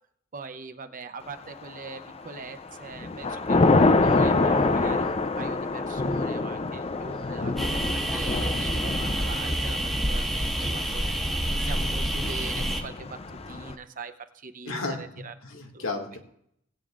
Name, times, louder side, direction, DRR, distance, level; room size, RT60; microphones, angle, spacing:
voice 1, 0.3-3.6 4.0-9.8 10.1-15.3 15.7-16.0, right 4 dB, 40° right, 8 dB, 0.8 m, -42 dB
Thunder / Rain, 1.6-2.2 2.6-13.7, left 3 dB, 30° left, 0.5 m, -26 dB
sound 1, 7.6-12.8, right 1 dB, ahead, 1.5 m, -28 dB
voice 2, 14.7-15.0 15.4-16.2, left 3 dB, 75° left, 2 dB, 2.1 m, -33 dB
19.5 x 9.1 x 2.5 m, 0.70 s
head